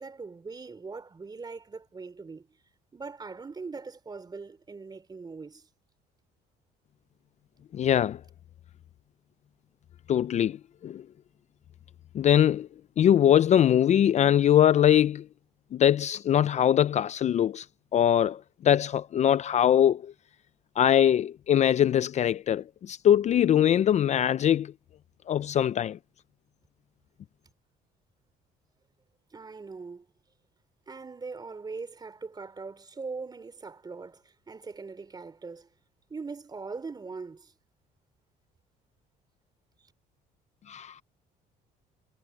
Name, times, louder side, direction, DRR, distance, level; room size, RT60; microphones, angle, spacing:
voice 1, 0.0-2.5 2.9-5.7 29.3-30.1 30.9-35.7 36.1-37.5, right 4 dB, 25° right, 3.4 m, -41 dB
voice 2, 7.7-8.2 10.1-10.6 10.8-11.0 12.1-12.7 13.0-15.3 15.7-17.7 17.9-20.1 20.8-24.7 25.3-26.0 40.7-41.0, left 10 dB, 45° left, 0.4 m, -22 dB
cardioid pair, 110°, 17 cm